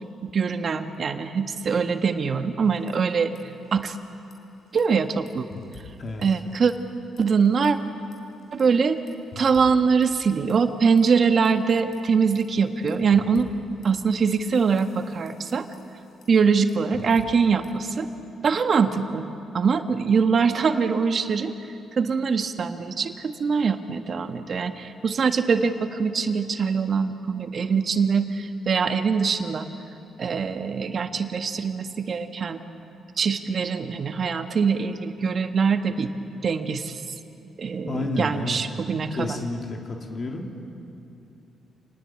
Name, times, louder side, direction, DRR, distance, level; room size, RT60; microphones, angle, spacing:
voice 1, 0.2-3.3 3.7-4.0 4.7-5.5 6.2-6.7 7.2-7.8 8.5-9.0 9.3-13.5 13.8-15.7 16.3-18.1 18.4-19.2 19.5-21.5 21.9-29.7 30.2-32.6 33.2-36.1 36.4-37.1 37.6-39.4, right 5 dB, 50° right, 7 dB, 1.6 m, -23 dB
sound 1, 2.6-3.4 3.7-3.9 4.2-6.9 7.2-7.7 8.1-11.5 11.9-17.9, left 4 dB, 65° left, 4.8 m, -48 dB
voice 2, 37.8-38.6 39.1-40.6, left 2 dB, 45° left, 1 dB, 3.3 m, -30 dB
27.0 x 19.5 x 8.9 m, 2.9 s
supercardioid pair, 60°, 0 cm